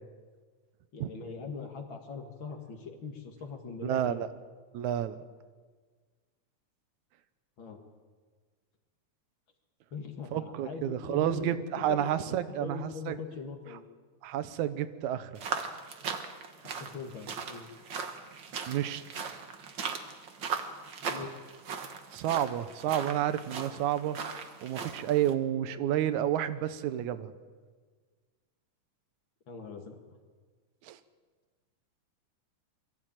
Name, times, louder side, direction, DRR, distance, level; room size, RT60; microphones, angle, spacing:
voice 1, 0.9-4.3 7.6-7.8 9.9-13.8 16.8-17.7 21.1-21.4 29.5-30.0, left 4 dB, 45° left, 5 dB, 2.4 m, -41 dB
voice 2, 3.8-4.3 4.7-5.2 10.3-13.2 14.2-15.3 18.7-19.4 22.1-24.2 24.6-27.3 30.8-31.0, right 11 dB, 75° right, 13 dB, 2.2 m, -30 dB
sound 1, 15.3-25.3, right 5 dB, 50° right, 1.6 m, -39 dB
23.5 x 14.5 x 9.0 m, 1.5 s
omnidirectional pair, 3.5 m